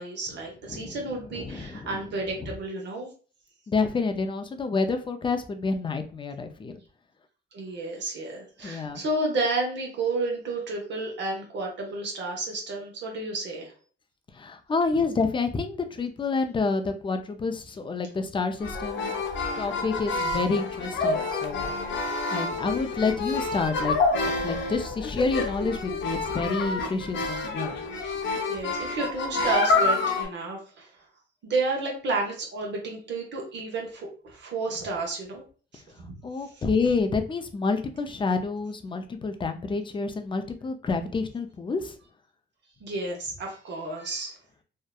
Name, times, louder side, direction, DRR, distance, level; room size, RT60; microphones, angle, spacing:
voice 1, 0.0-3.1 7.5-13.7 23.9-24.0 28.0-28.2 28.5-30.9 31.4-35.4 35.7-35.8 36.1-36.6 42.8-44.4, right 2 dB, 65° right, 0 dB, 0.8 m, -31 dB
voice 2, 1.4-2.0 3.7-6.7 8.6-9.0 14.4-19.2 19.6-21.7 22.3-24.0 24.2-27.7 36.2-41.9, left 4 dB, 25° left, 7 dB, 0.4 m, -28 dB
sound 1, 18.6-30.2, left 3 dB, 70° left, 0.6 m, -28 dB
2.7 x 2.1 x 2.3 m, 0.39 s
cardioid pair, 90°, 20 cm